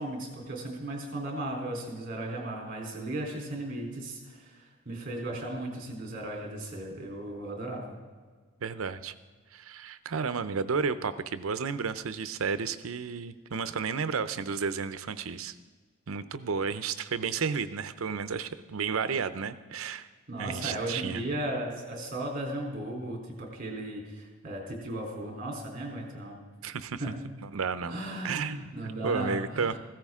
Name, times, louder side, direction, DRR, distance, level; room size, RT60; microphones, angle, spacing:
voice 1, 0.0-4.6 4.9-7.9 20.3-26.4 27.0-27.2 27.9-29.8, right 1 dB, 45° right, -1 dB, 3.4 m, -36 dB
voice 2, 8.6-9.1 9.5-15.6 16.1-20.1 20.4-21.2 26.6-27.1 27.4-27.9 28.2-28.6 28.8-29.8, right 5 dB, 80° right, 13 dB, 0.6 m, -32 dB
15.5 x 13.5 x 3.7 m, 1.5 s
head